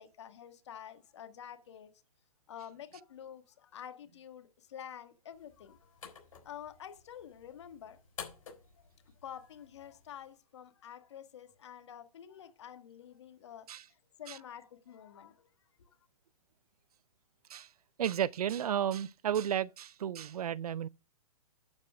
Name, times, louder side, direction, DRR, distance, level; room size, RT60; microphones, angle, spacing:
voice 1, 0.0-1.9 2.5-6.0 6.4-8.0 8.8-8.9 9.2-15.5 15.8-16.1, left 9 dB, 50° left, 1.6 m, -49 dB
sound 1, 5.3-10.3, left 6 dB, 65° left, 5.1 m, -52 dB
voice 2, 18.0-20.9, right 9 dB, 85° right, 0.5 m, -33 dB
11.5 x 4.9 x 5.9 m
hypercardioid pair, 165°, 19 cm